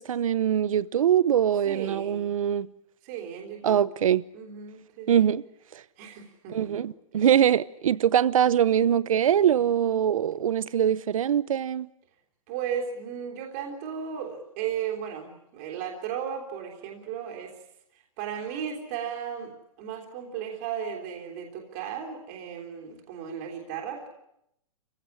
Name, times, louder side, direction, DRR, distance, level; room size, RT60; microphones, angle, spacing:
voice 1, 0.0-2.7 3.6-4.2 5.1-5.4 5.7-5.8 6.5-11.9, right 9 dB, 65° right, 0.9 m, -23 dB
voice 2, 1.6-2.3 3.0-3.8 4.3-5.3 6.0-6.9 7.1-7.3 12.5-17.5 17.9-24.1, right 8 dB, 25° right, 3.4 m, -35 dB
29.0 x 16.0 x 9.9 m
hypercardioid pair, 180°, 19 cm